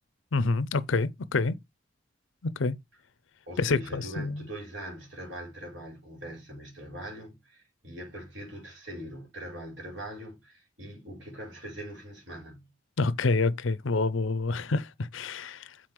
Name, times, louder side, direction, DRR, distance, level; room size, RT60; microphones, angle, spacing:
voice 1, 0.3-1.6 2.6-2.7 3.6-4.4 13.0-15.7, left 3 dB, 80° left, 0.7 m, -27 dB
voice 2, 3.5-12.7, right 1 dB, 70° right, 4.6 m, -42 dB
7.6 x 4.2 x 4.7 m
head